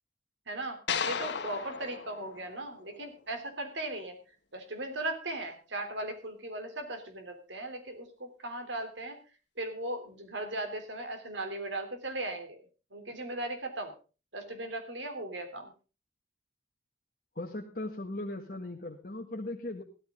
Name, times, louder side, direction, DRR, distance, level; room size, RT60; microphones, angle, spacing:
voice 1, 0.5-4.2 4.5-9.2 9.6-12.6 12.9-13.9 14.3-15.7, right 2 dB, 85° right, 7 dB, 3.4 m, -38 dB
sound 1, 0.9-3.2, left 6 dB, 75° left, 1.4 m, -36 dB
voice 2, 17.4-19.8, left 1 dB, 50° left, 1 dB, 1.8 m, -38 dB
15.5 x 13.5 x 3.7 m, 0.34 s
head